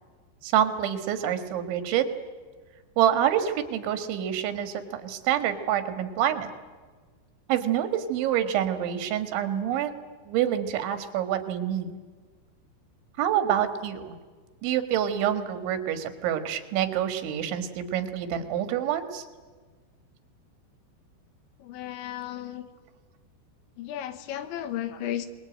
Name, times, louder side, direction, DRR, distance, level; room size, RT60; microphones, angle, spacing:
voice 1, 0.4-2.1 3.0-6.5 7.5-9.9 10.3-11.9 13.2-14.2 14.6-19.2, right 10 dB, 80° right, 9 dB, 4.0 m, -27 dB
voice 2, 21.6-22.7 23.8-25.3, left 11 dB, 85° left, 11 dB, 3.7 m, -34 dB
27.0 x 21.0 x 9.0 m, 1.4 s
omnidirectional pair, 5.3 m